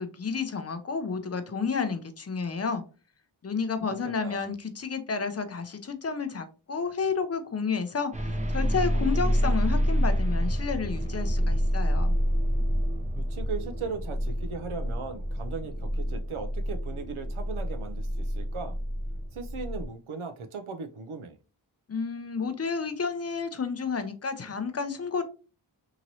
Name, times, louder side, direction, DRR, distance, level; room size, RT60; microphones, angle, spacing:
voice 1, 0.0-2.8 3.4-12.2 21.9-25.2, left 5 dB, 35° left, 0.5 m, -31 dB
voice 2, 4.0-4.5 13.2-18.8 19.3-21.4, right 4 dB, 85° right, 0.6 m, -38 dB
sound 1, 8.1-19.9, equal, 15° right, 0.5 m, -28 dB
2.9 x 2.9 x 2.6 m
wide cardioid pair, 45°, 48 cm